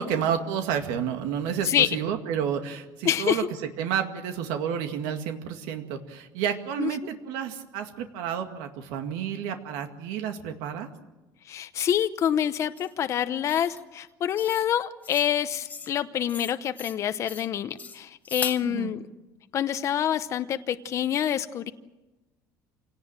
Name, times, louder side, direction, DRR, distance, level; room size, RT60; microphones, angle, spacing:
voice 1, 0.0-3.5 3.8-10.9 18.6-18.9, right 8 dB, 85° right, 6 dB, 2.1 m, -30 dB
voice 2, 3.0-3.5 6.8-6.9 11.5-19.1 19.5-21.7, left 10 dB, 40° left, 11 dB, 0.8 m, -26 dB
sound 1, 12.8-12.9 13.5-13.8 14.4-14.7 15.0-15.3 15.6-16.0 16.3-17.0 17.3-17.5 17.8-18.6, left 5 dB, 20° left, 1.2 m, -38 dB
26.5 x 18.0 x 7.6 m, 1.1 s
cardioid pair, 135°, 7 cm